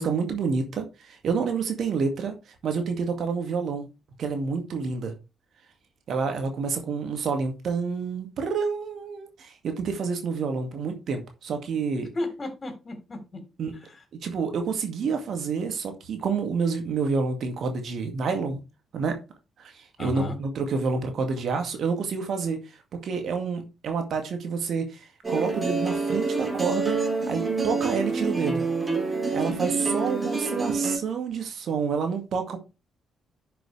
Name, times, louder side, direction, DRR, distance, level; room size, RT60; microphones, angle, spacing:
voice 1, 0.0-2.3 2.6-3.9 4.2-5.1 6.1-12.1 13.6-13.7 14.2-18.6 18.9-19.2 19.6-22.6 23.0-27.0 27.3-28.6 29.3-32.6, right 5 dB, 60° right, 2.1 m, -28 dB
voice 2, 12.1-13.4 13.7-14.0 20.0-20.4, left 2 dB, 35° left, 3.7 m, -34 dB
sound 1, 25.2-31.0, right 3 dB, 30° right, 3.7 m, -27 dB
11.0 x 6.2 x 3.3 m
hypercardioid pair, 40°, 0 cm